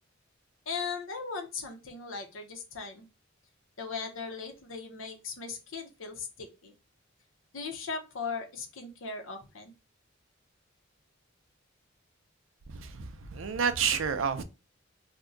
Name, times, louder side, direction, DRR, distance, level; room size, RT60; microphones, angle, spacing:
voice 1, 0.7-3.1 3.8-6.7 7.5-9.7, left 5 dB, 70° left, 0.8 m, -38 dB
voice 2, 12.7-14.4, right 7 dB, 70° right, 0.5 m, -30 dB
2.7 x 2.2 x 3.7 m
head